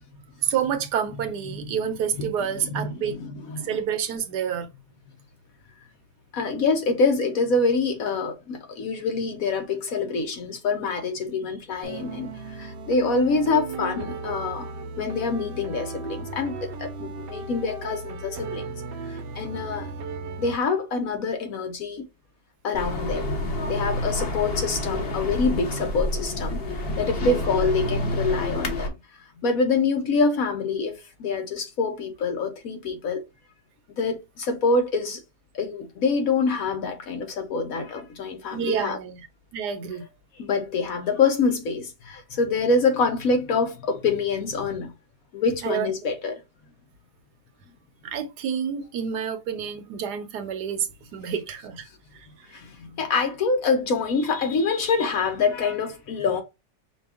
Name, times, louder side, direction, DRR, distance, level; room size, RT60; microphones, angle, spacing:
voice 1, 0.4-3.2 3.6-4.7 27.3-27.4 38.5-39.2 39.5-40.0 45.6-45.9 48.0-50.9 51.1-51.9 52.1-52.3, right 8 dB, 70° right, 1.2 m, -28 dB
voice 2, 2.2-3.8 6.3-14.7 15.0-18.7 19.0-19.9 20.4-22.0 22.6-23.3 23.7-28.9 29.4-33.2 34.0-35.2 35.5-39.0 40.4-44.9 45.3-46.4 52.5-56.4, left 4 dB, 65° left, 1.0 m, -26 dB
sound 1, 11.8-20.6, right 4 dB, 90° right, 1.3 m, -36 dB
sound 2, 22.7-28.9, left 1 dB, 40° left, 1.0 m, -28 dB
5.2 x 2.3 x 3.4 m
omnidirectional pair, 1.9 m